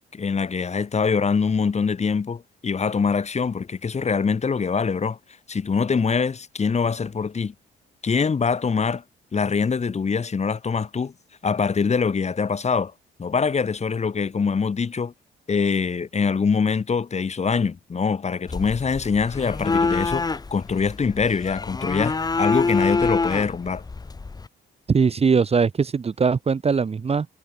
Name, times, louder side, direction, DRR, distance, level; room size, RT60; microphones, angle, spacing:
voice 1, 0.1-5.2 5.5-7.5 8.0-9.0 9.3-11.1 11.4-12.9 13.2-15.1 15.5-23.8, left 5 dB, 35° left, 1.9 m, -24 dB
sound 1, 18.5-24.5, left 4 dB, 20° left, 0.8 m, -26 dB
voice 2, 24.9-27.3, right 5 dB, 30° right, 1.0 m, -21 dB
cardioid pair, 90°, 20 cm